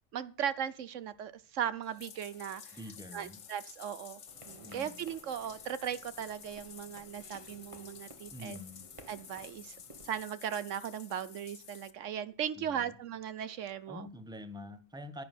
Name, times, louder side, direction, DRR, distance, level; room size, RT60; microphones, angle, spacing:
voice 1, 0.1-2.8 3.1-4.2 4.5-8.6 9.1-9.8 10.0-14.1, right 9 dB, 80° right, 15 dB, 1.1 m, -38 dB
Bathtub (filling or washing), 1.8-11.9, left 7 dB, 80° left, 1.4 m, -52 dB
voice 2, 2.7-3.4 4.6-5.0 8.3-8.8 12.6-12.9 13.9-15.2, left 1 dB, 5° right, 11 dB, 1.0 m, -46 dB
sound 1, 4.3-10.2, right 2 dB, 25° right, 1.3 m, -56 dB
10.5 x 9.6 x 7.4 m, 0.41 s
omnidirectional pair, 1.3 m